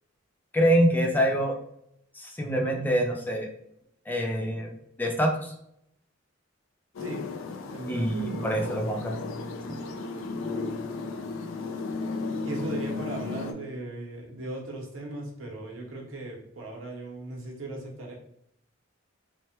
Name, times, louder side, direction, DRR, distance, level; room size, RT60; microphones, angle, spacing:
voice 1, 0.5-1.5 2.1-3.5 4.1-4.7 5.0-5.5 7.9-9.1, equal, 10° left, 2 dB, 0.4 m, -25 dB
sound 1, 6.9-13.5, left 3 dB, 90° left, 0.4 m, -34 dB
voice 2, 7.6-8.7 10.1-10.2 12.4-18.1, right 2 dB, 90° right, -1 dB, 0.9 m, -38 dB
3.2 x 2.1 x 2.8 m, 0.73 s
head